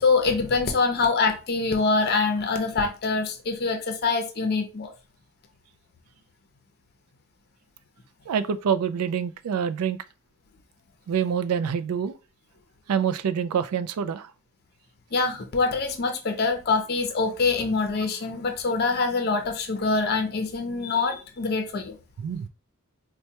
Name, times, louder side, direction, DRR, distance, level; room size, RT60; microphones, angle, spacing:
voice 1, 0.0-4.9 15.1-22.0, left 4 dB, 45° left, 0.6 m, -24 dB
voice 2, 8.3-10.0 11.1-12.2 12.9-14.3 22.2-22.5, right 7 dB, 90° right, 0.3 m, -26 dB
4.3 x 2.2 x 2.8 m
head